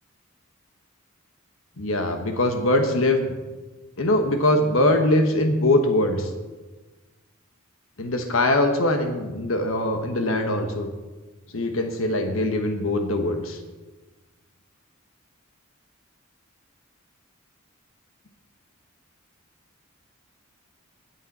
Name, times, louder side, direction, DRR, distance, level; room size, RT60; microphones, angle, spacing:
voice 1, 1.8-3.3 4.0-6.3 8.0-10.9 11.5-13.6, left 1 dB, 70° left, 6 dB, 1.3 m, -22 dB
20.5 x 7.3 x 4.2 m, 1.2 s
head